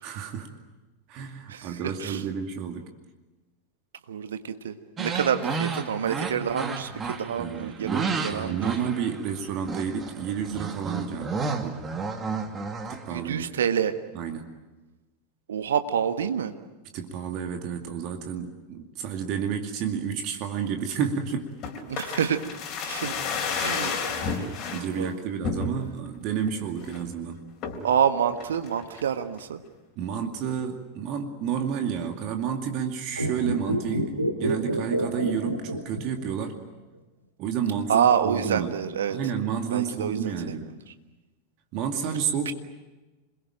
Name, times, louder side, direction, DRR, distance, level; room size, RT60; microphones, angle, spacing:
voice 1, 0.0-0.5 1.1-2.9 7.4-11.8 12.9-13.5 14.1-14.5 16.9-21.5 23.2-23.3 23.8-23.9 24.7-27.4 30.0-36.6 37.4-38.8 39.1-40.7 41.7-42.5, right 7 dB, 40° right, 5 dB, 2.4 m, -30 dB
voice 2, 1.5-2.2 4.1-8.7 13.1-13.9 15.5-16.5 21.9-22.4 22.9-23.1 23.5-24.5 25.0-25.2 27.8-29.6 37.9-39.2 39.7-40.6 42.4-42.5, right 8 dB, 65° right, 9 dB, 1.5 m, -27 dB
sound 1, 5.0-9.4 9.7-13.3, right 4 dB, 20° right, 2.4 m, -32 dB
sound 2, 21.6-24.9 25.4-26.1 26.5-26.6 26.8-27.1 27.6-27.9 28.4-29.1 29.4-29.5, left 5 dB, 35° left, 4.0 m, -31 dB
sound 3, 33.1-36.5 36.7-36.8, right 1 dB, 85° right, 2.3 m, -28 dB
27.5 x 22.0 x 9.0 m, 1.1 s
figure-of-eight pair, 90°, 0 cm